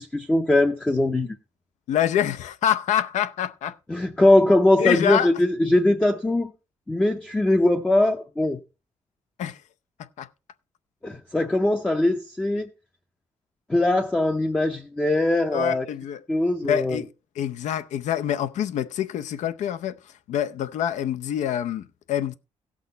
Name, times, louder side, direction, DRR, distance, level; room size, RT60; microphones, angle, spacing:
voice 1, 0.0-1.3 3.9-6.5 6.9-8.6 11.0-12.7 13.7-15.9 16.3-17.0, left 1 dB, 10° left, 0.5 m, -21 dB
voice 2, 1.9-3.8 4.8-5.3 9.4-9.6 10.2-10.3 15.5-16.2 16.7-17.1 17.4-20.0 20.3-22.3, left 10 dB, 85° left, 0.6 m, -26 dB
16.5 x 6.2 x 3.9 m
wide cardioid pair, 175°, 12 cm